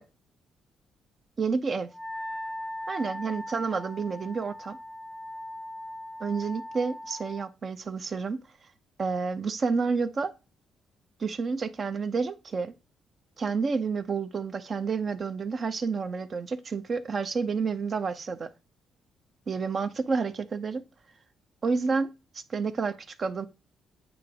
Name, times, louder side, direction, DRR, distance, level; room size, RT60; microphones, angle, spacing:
voice 1, 1.4-1.9 2.9-4.8 6.2-8.4 9.0-10.3 11.2-12.7 13.4-18.5 19.5-20.8 21.6-23.5, right 5 dB, 45° right, 0.7 m, -30 dB
Wind instrument woodwind instrument, 1.9-7.5, left 1 dB, 5° right, 0.7 m, -39 dB
8.7 x 2.9 x 5.1 m
cardioid pair, 90°, 0 cm